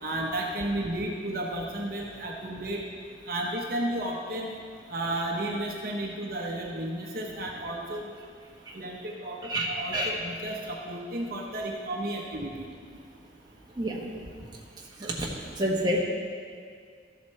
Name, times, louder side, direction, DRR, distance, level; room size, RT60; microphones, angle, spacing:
voice 1, 0.0-2.8 3.3-4.5 4.9-8.1 8.7-12.6, right 1 dB, 50° right, -1 dB, 0.9 m, -33 dB
voice 2, 9.4-10.1 13.8-14.0 15.0-15.3 15.6-16.0, equal, 20° right, -3 dB, 1.0 m, -28 dB
13.5 x 7.9 x 3.2 m, 2.1 s
head